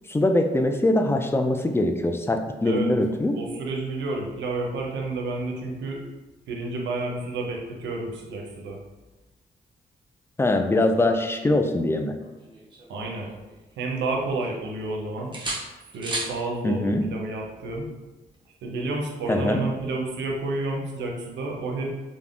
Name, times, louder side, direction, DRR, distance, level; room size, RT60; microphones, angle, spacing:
voice 1, 0.1-3.3 10.4-12.1 16.6-17.1 19.3-19.6, left 1 dB, 15° left, 5 dB, 0.3 m, -22 dB
voice 2, 3.3-6.0 6.5-8.8 12.9-13.3 13.8-15.3 15.9-17.9 18.6-21.9, right 2 dB, 75° right, 0 dB, 0.6 m, -30 dB
sound 1, 12.2-13.7 14.1-14.9 15.3-16.4 18.3-18.5, right 2 dB, 25° right, 0.7 m, -35 dB
3.2 x 2.1 x 2.5 m, 1.1 s
supercardioid pair, 45°, 19 cm